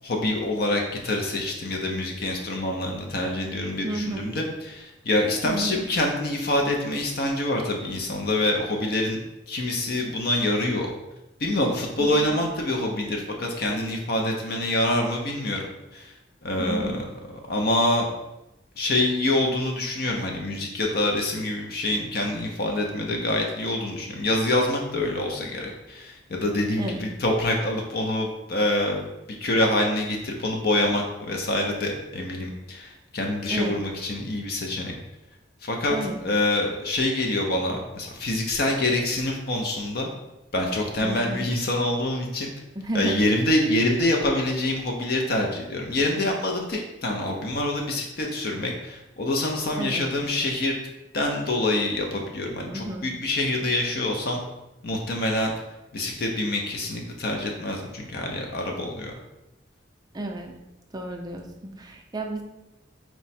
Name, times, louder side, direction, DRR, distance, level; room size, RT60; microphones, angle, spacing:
voice 1, 0.0-9.2 9.5-10.9 11.4-15.7 15.9-16.1 16.4-17.0 17.5-18.1 18.8-29.0 29.4-34.9 35.6-40.1 40.5-42.5 42.9-50.8 51.1-54.4 54.8-55.5 55.9-59.1, left 1 dB, 55° left, 1 dB, 0.5 m, -26 dB
voice 2, 3.8-4.4 5.4-5.8 12.0-12.4 16.6-17.0 26.8-27.1 33.5-33.9 35.9-36.2 41.0-41.5 42.7-43.2 49.8-50.1 52.7-53.1 60.1-60.6 60.9-62.4, right 1 dB, 20° right, 2 dB, 0.4 m, -32 dB
4.5 x 2.1 x 4.1 m, 0.95 s
head